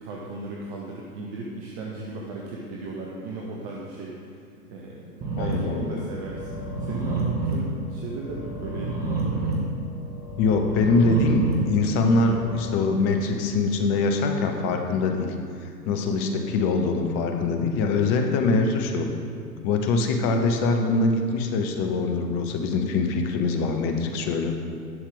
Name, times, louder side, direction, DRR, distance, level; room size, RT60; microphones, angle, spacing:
voice 1, 0.0-4.3 4.7-9.5 14.6-14.8 16.3-16.7, right 2 dB, 40° right, -2 dB, 1.1 m, -36 dB
sound 1, 5.2-13.2, right 2 dB, 20° right, 1.6 m, -30 dB
voice 2, 5.4-6.0 10.4-15.3 15.6-19.1 19.6-24.6, left 3 dB, 20° left, 4 dB, 0.5 m, -23 dB
11.0 x 6.3 x 3.7 m, 2.4 s
figure-of-eight pair, 105°, 50 cm